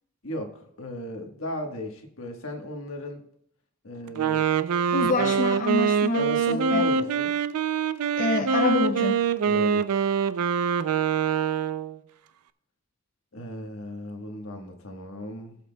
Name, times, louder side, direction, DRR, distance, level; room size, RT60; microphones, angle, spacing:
voice 1, 0.2-3.2 3.8-4.5 5.1-5.4 6.1-7.3 9.5-9.9 13.3-15.6, left 1 dB, 65° left, 4 dB, 1.3 m, -36 dB
Wind instrument woodwind instrument, 4.1-12.0, right 6 dB, 85° right, 0.4 m, -24 dB
voice 2, 4.9-6.9 8.2-9.2, left 2 dB, 35° left, 4 dB, 0.4 m, -27 dB
17.5 x 7.5 x 2.3 m, 0.69 s
head